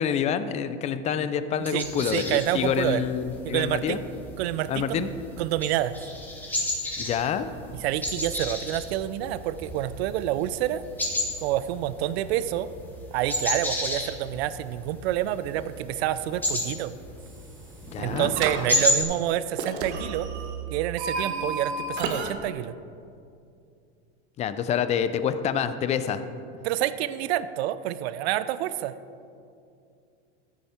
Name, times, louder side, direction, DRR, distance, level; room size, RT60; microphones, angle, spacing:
voice 1, 0.0-4.0 4.7-5.1 7.0-7.5 17.9-18.3 24.4-26.2, left 8 dB, 20° left, 12 dB, 0.4 m, -27 dB
sound 1, 1.6-19.0, left 1 dB, 5° left, 1.8 m, -32 dB
voice 2, 1.7-3.0 3.4-4.0 4.4-5.1 5.4-5.9 7.8-10.8 11.4-12.7 13.1-16.9 18.0-20.3 20.7-22.7 26.6-28.9, right 13 dB, 70° right, 14 dB, 0.6 m, -28 dB
sound 2, 17.2-17.7 18.0-18.6 19.6-22.3, right 4 dB, 85° right, 1.5 m, -32 dB
14.5 x 8.4 x 4.4 m, 2.4 s
supercardioid pair, 145°, 33 cm